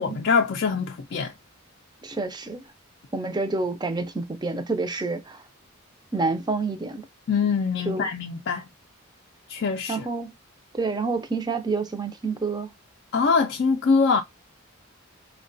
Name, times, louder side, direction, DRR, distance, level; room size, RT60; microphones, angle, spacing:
voice 1, 0.0-1.3 7.3-8.6 9.5-10.1 13.1-14.2, left 5 dB, 50° left, 0.4 m, -23 dB
voice 2, 2.0-2.6 3.1-5.4 6.1-7.0 7.9-8.1 9.9-10.3 10.7-12.7, right 3 dB, 20° right, 0.4 m, -28 dB
4.5 x 2.2 x 2.5 m
head